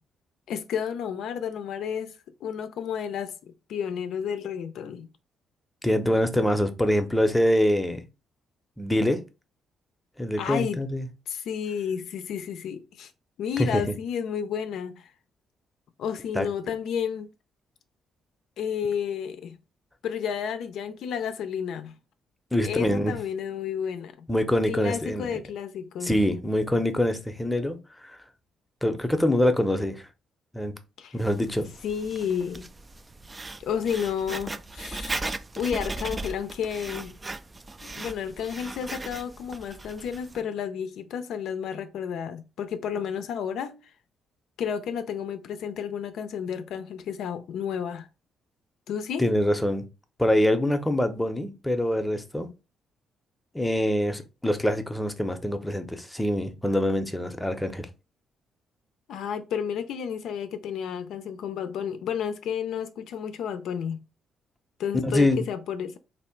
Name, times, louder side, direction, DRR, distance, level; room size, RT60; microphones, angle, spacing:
voice 1, 0.5-2.1 2.4-5.1 10.4-10.8 11.3-13.1 13.4-15.1 16.0-17.3 18.6-19.6 20.0-21.9 22.6-24.3 24.7-26.1 31.0-31.1 31.8-32.7 33.6-35.2 35.6-37.2 37.8-43.9 44.6-48.1 48.9-49.3 59.1-64.0 64.8-66.0, left 8 dB, 75° left, 0.4 m, -31 dB
voice 2, 5.8-8.0 8.8-9.2 10.2-11.1 13.6-13.8 16.3-16.5 22.5-23.2 24.3-25.4 26.0-27.8 28.0-28.2 28.8-30.1 30.5-30.7 31.1-31.7 49.2-49.8 50.2-52.5 53.5-57.9 65.0-65.4, left 1 dB, 10° left, 0.7 m, -24 dB
Writing, 31.2-40.4, right 2 dB, 20° right, 0.3 m, -38 dB
3.1 x 2.7 x 4.4 m
cardioid pair, 90°, 0 cm